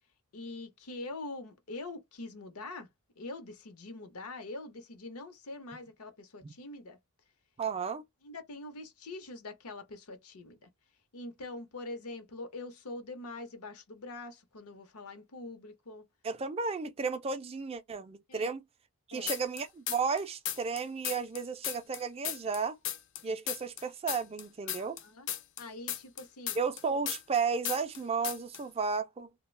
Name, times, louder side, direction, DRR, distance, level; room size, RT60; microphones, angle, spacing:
voice 1, 0.3-2.9 3.2-7.0 8.2-10.7 11.1-16.0 18.3-18.5 19.1-19.3 24.7-25.3 25.6-26.6, left 2 dB, 80° left, 0.8 m, -44 dB
voice 2, 7.6-8.0 16.2-18.6 19.1-22.8 23.2-25.0 26.5-29.3, right 5 dB, 25° right, 0.3 m, -33 dB
sound 1, 19.3-20.2 20.5-23.2 23.5-27.4 27.6-28.0 28.2-28.6, left 11 dB, 55° left, 0.5 m, -35 dB
2.3 x 2.2 x 3.1 m
head